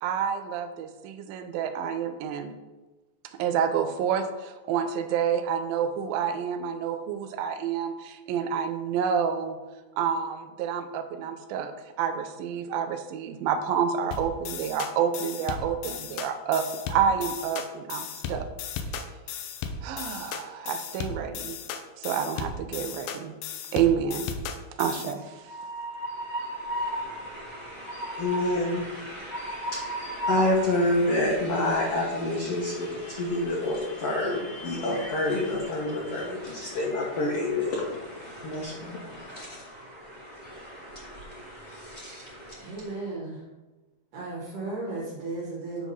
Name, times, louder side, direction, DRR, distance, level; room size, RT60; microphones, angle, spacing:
voice 1, 0.0-2.6 3.2-9.6 10.0-18.5 19.8-21.6 21.9-23.4 23.7-24.3 24.8-25.4, right 7 dB, 85° right, 8 dB, 2.4 m, -28 dB
sound 1, 14.1-25.1, left 6 dB, 85° left, 2.3 m, -36 dB
Train, 25.2-43.0, equal, 20° left, 1.3 m, -38 dB
voice 2, 28.2-39.6, left 1 dB, 60° left, -4 dB, 1.7 m, -28 dB
voice 3, 42.6-43.4 44.1-45.9, right 3 dB, 65° right, -5 dB, 3.1 m, -35 dB
9.8 x 3.6 x 5.4 m, 1.2 s
omnidirectional pair, 4.1 m